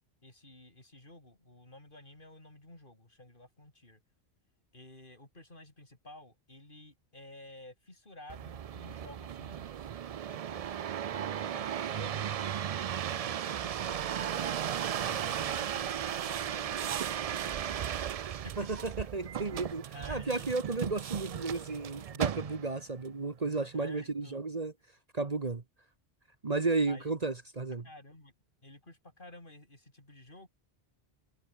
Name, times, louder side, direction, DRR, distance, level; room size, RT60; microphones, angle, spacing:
voice 1, 0.2-4.0 4.7-9.9 10.3-10.7 11.1-14.6 15.0-18.7 19.9-20.5 23.7-24.4 26.9-27.1 27.8-28.3 28.6-30.5, left 1 dB, 50° left, 5.0 m, -53 dB
sound 1, 8.3-22.8 23.4-24.0, right 9 dB, 55° right, 0.4 m, -36 dB
voice 2, 18.6-24.7 25.1-25.6 26.4-27.9, right 3 dB, 40° right, 1.3 m, -33 dB
omnidirectional pair, 1.1 m